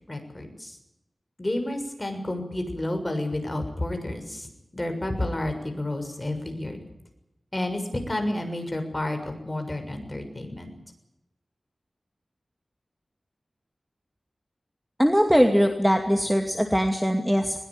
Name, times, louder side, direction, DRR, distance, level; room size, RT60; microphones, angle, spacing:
voice 1, 0.1-0.8 1.4-4.5 4.7-6.8 7.5-10.7, left 1 dB, 20° left, 5 dB, 6.6 m, -30 dB
voice 2, 15.0-17.6, equal, 5° right, 4 dB, 2.5 m, -21 dB
21.0 x 21.0 x 8.9 m, 0.85 s
wide cardioid pair, 90°, 0 cm